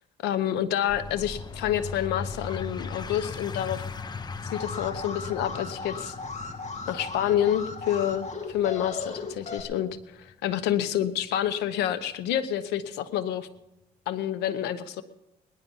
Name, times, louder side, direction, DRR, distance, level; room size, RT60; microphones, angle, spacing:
voice 1, 0.2-3.8 4.4-6.1 6.9-13.5 14.1-15.0, left 10 dB, 90° left, 12 dB, 0.9 m, -28 dB
sound 1, 0.9-12.0, left 4 dB, 25° left, 0.7 m, -39 dB
Alarm, 4.5-9.6, left 3 dB, 45° left, 2.0 m, -37 dB
19.5 x 11.0 x 5.4 m, 0.93 s
cardioid pair, 110°, 17 cm